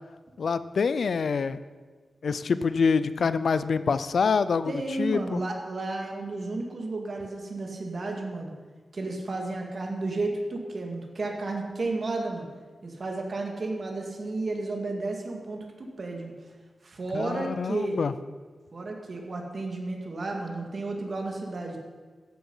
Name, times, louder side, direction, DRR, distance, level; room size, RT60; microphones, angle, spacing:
voice 1, 0.4-1.6 2.2-4.7 5.0-5.4 17.1-18.1, left 5 dB, 65° left, 14 dB, 0.5 m, -26 dB
voice 2, 4.7-8.5 8.9-12.5 12.8-16.3 16.8-18.0 18.7-21.9, right 2 dB, 45° right, 1 dB, 2.3 m, -32 dB
14.0 x 10.5 x 5.5 m, 1.4 s
wide cardioid pair, 150°, 0 cm